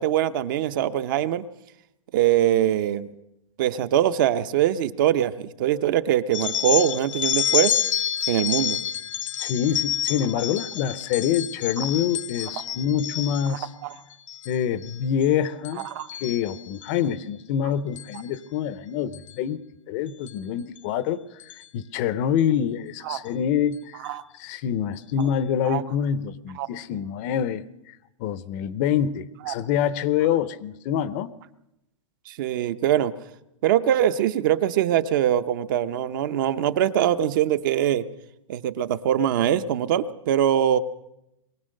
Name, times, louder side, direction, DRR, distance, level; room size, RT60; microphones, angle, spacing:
voice 1, 0.0-1.4 2.1-3.1 3.6-7.7 8.3-8.8 13.5-14.0 15.9-16.1 23.0-23.2 24.0-24.2 25.7-25.8 26.6-26.7 29.5-29.6 32.3-33.1 33.6-38.0 38.5-40.8, right 11 dB, 40° right, 12 dB, 0.9 m, -23 dB
sound 1, 6.3-13.6 14.1-14.5 14.8-15.3 15.6-17.0 18.0-18.2 19.1-19.3 20.3-20.4 20.8-20.9 21.4-21.6, left 10 dB, 70° left, 0.8 m, -28 dB
voice 2, 9.4-13.7 14.5-15.9 16.2-19.6 19.9-21.2 21.5-31.3, left 9 dB, 30° left, 16 dB, 0.7 m, -26 dB
23.0 x 17.5 x 6.5 m, 0.85 s
supercardioid pair, 170°, 17 cm